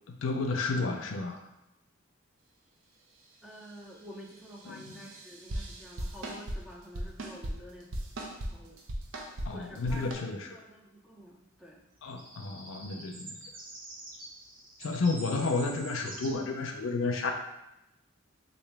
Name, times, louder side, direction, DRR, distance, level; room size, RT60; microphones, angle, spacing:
voice 1, 0.1-1.4 4.6-4.9 9.5-10.6 12.0-13.4 14.8-17.3, left 3 dB, 80° left, 3 dB, 0.5 m, -31 dB
voice 2, 3.4-7.9 8.4-8.8 9.5-11.8, equal, 5° right, -2 dB, 0.5 m, -49 dB
sound 1, 4.8-6.6 6.9-7.5 7.9-8.5 8.8-9.5 9.8-10.1, right 1 dB, 85° right, 0.6 m, -36 dB
sound 2, 12.0-16.4, right 2 dB, 45° right, 0.7 m, -46 dB
3.8 x 2.6 x 3.3 m, 0.89 s
head